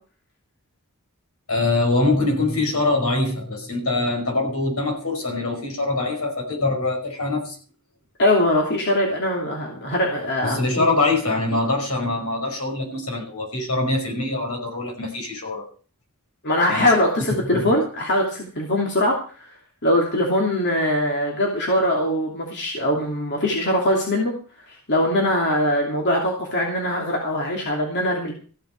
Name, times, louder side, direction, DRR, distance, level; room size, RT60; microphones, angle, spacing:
voice 1, 1.5-7.6 10.4-15.7 16.7-16.9 17.5-17.8, left 2 dB, 75° left, 5.3 m, -23 dB
voice 2, 8.2-10.9 16.4-19.5 19.8-24.3 24.7-28.3, left 1 dB, 55° left, 2.9 m, -22 dB
15.0 x 8.1 x 6.5 m
head